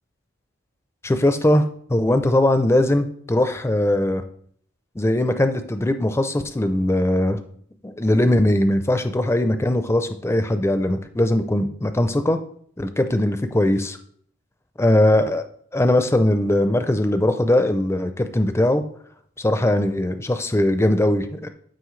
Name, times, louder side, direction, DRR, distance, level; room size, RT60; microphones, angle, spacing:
voice 1, 1.0-1.6 1.9-4.2 5.0-7.4 7.8-12.4 12.8-14.0 14.8-15.5 15.7-18.8 19.4-21.5, left 1 dB, 10° left, 9 dB, 0.4 m, -20 dB
11.5 x 5.3 x 3.2 m, 0.62 s
head